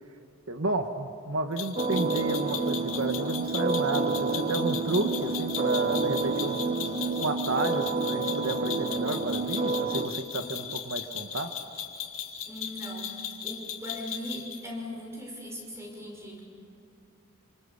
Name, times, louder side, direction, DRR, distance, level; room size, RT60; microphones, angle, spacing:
voice 1, 0.5-6.9 7.2-11.5, right 2 dB, 70° right, 6 dB, 1.4 m, -31 dB
sound 1, 1.6-14.6, left 9 dB, 75° left, 2.7 m, -37 dB
sound 2, 1.8-10.1, right 4 dB, 30° right, 1.0 m, -29 dB
voice 2, 12.5-13.1 13.4-16.4, left 1 dB, 15° right, 0 dB, 5.9 m, -39 dB
29.0 x 26.0 x 7.0 m, 2.7 s
head